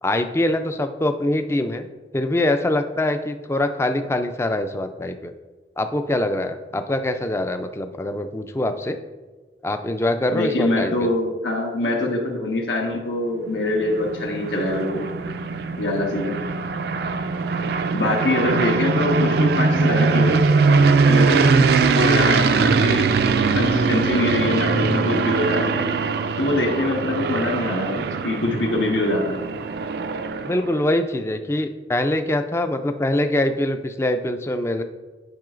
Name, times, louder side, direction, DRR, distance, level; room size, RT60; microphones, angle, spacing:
voice 1, 0.0-1.9 2.1-5.3 5.8-9.0 9.6-11.1 30.4-34.8, left 1 dB, 15° left, 8 dB, 0.3 m, -23 dB
voice 2, 10.3-15.1 15.8-16.4 17.9-20.4 21.1-23.1 23.5-25.8 26.4-29.4, left 1 dB, 85° left, 0 dB, 1.3 m, -24 dB
sound 1, 13.6-30.8, right 4 dB, 60° right, 0.3 m, -21 dB
10.5 x 5.5 x 2.5 m, 1.3 s
head